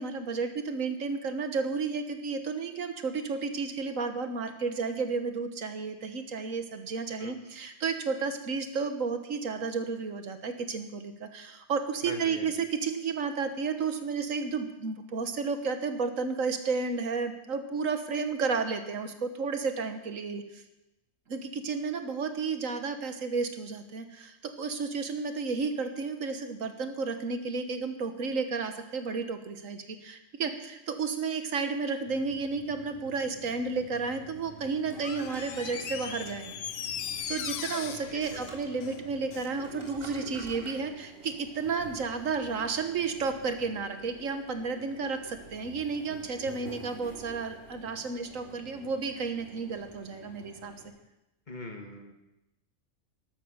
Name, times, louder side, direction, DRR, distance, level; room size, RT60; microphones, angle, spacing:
voice 1, 0.0-20.6 21.3-36.6 37.3-50.7, right 4 dB, 85° right, 8 dB, 1.7 m, -32 dB
voice 2, 12.0-12.5 38.1-38.5 40.6-40.8 51.5-52.1, left 2 dB, 35° left, 3 dB, 2.0 m, -42 dB
sound 1, 32.0-50.9, right 2 dB, 65° right, 5.2 m, -50 dB
Toilet flush, 34.7-40.9, right 1 dB, 20° right, 3.2 m, -47 dB
Door, 35.0-39.6 39.9-40.0, left 8 dB, 75° left, 1.2 m, -39 dB
12.5 x 12.0 x 6.6 m, 0.94 s
omnidirectional pair, 1.3 m